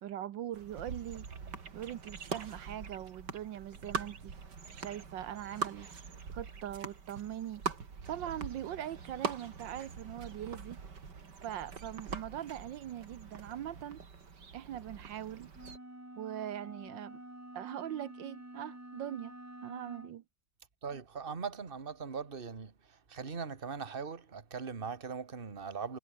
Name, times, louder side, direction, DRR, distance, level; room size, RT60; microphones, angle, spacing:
voice 1, 0.0-1.3 1.7-4.4 4.7-5.9 6.3-7.6 8.1-10.8 11.4-14.0 14.5-15.5 16.2-17.2 17.5-19.3 19.6-20.2, right 11 dB, 80° right, 1.6 m, -41 dB
sound 1, 0.5-15.8, right 5 dB, 65° right, 3.1 m, -43 dB
sound 2, 15.5-20.2, right 1 dB, 10° right, 1.6 m, -49 dB
voice 2, 20.8-26.0, right 5 dB, 30° right, 1.8 m, -40 dB
omnidirectional pair, 2.0 m